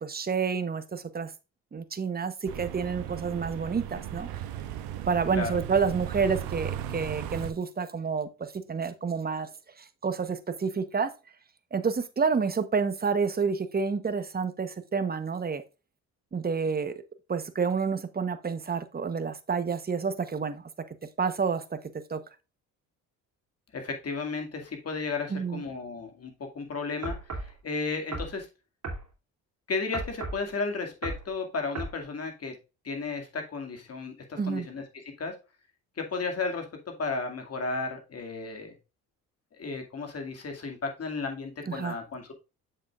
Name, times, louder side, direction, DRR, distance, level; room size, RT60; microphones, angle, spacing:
voice 1, 0.0-1.3 1.7-4.3 5.1-9.5 9.8-11.1 11.7-15.6 16.3-17.0 17.3-20.6 21.2-21.8 22.1-22.2 25.3-25.6 34.4-34.7 41.7-41.9, right 5 dB, 25° right, 11 dB, 1.0 m, -29 dB
sound 1, 2.5-7.5, right 10 dB, 75° right, 0.9 m, -36 dB
voice 2, 5.3-5.6 23.7-28.5 29.7-32.5 32.8-35.4 36.0-38.7 39.5-42.3, left 4 dB, 40° left, 4 dB, 2.2 m, -34 dB
sound 2, 27.0-27.5 28.1-28.4 28.8-29.1 29.9-30.4 31.0-31.3 31.7-32.0, right 2 dB, 45° right, 2.7 m, -35 dB
7.3 x 6.6 x 2.4 m, 0.29 s
supercardioid pair, 65°, 36 cm